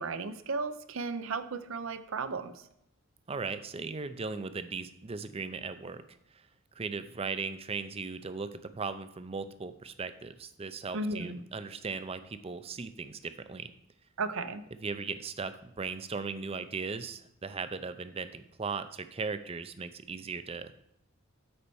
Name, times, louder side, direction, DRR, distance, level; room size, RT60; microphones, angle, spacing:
voice 1, 0.0-2.6 10.9-11.4 14.2-14.7, right 3 dB, 70° right, 11 dB, 0.6 m, -35 dB
voice 2, 3.3-6.0 6.8-13.7 14.8-20.8, right 4 dB, 30° right, 11 dB, 0.5 m, -38 dB
8.8 x 4.3 x 7.0 m, 0.76 s
head